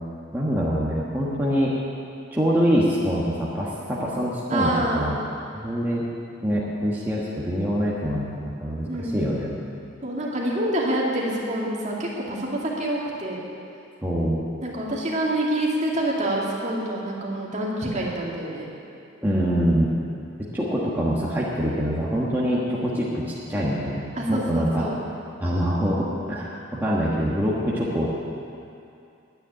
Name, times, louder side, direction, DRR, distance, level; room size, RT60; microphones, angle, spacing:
voice 1, 0.3-1.7 2.3-5.1 5.5-6.0 6.4-8.3 8.6-9.6 14.0-14.4 19.2-19.9 20.5-24.0 24.3-24.9 25.4-28.1, equal, 10° right, -7 dB, 1.3 m, -24 dB
voice 2, 4.5-5.1 8.9-9.2 10.0-13.4 14.6-18.7 24.1-25.0, right 1 dB, 35° right, -4 dB, 2.2 m, -26 dB
9.8 x 9.2 x 9.9 m, 2.6 s
head